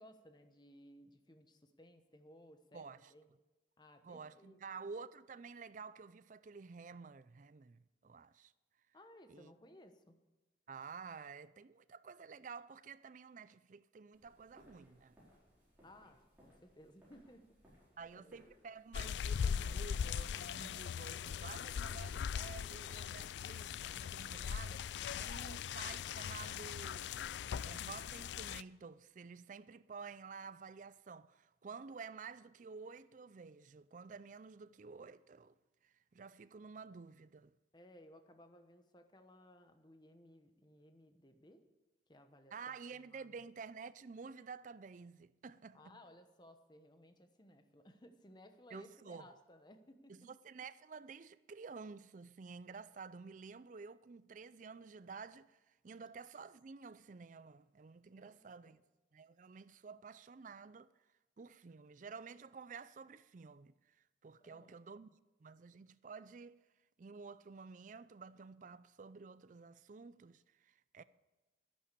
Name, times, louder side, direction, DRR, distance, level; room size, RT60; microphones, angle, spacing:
voice 1, 0.0-3.3 3.8-4.6 8.9-10.2 15.8-17.5 18.1-18.4 37.7-41.6 42.1-43.4 45.7-50.3 58.1-58.8 64.4-64.8, left 1 dB, 25° left, 1.0 m, -60 dB
voice 2, 2.7-3.1 4.0-8.5 9.3-9.5 10.7-15.2 18.0-27.1 27.6-35.6 35.8-37.5 42.5-46.0 48.7-49.3 50.1-58.8 59.1-60.9 61.4-63.7 64.2-65.1 65.4-66.6 67.0-71.0, right 5 dB, 45° right, 0.4 m, -51 dB
sound 1, 14.1-22.9, equal, 10° right, 4.8 m, -67 dB
sound 2, 18.9-28.6, left 8 dB, 75° left, 0.3 m, -40 dB
11.5 x 11.0 x 6.8 m
head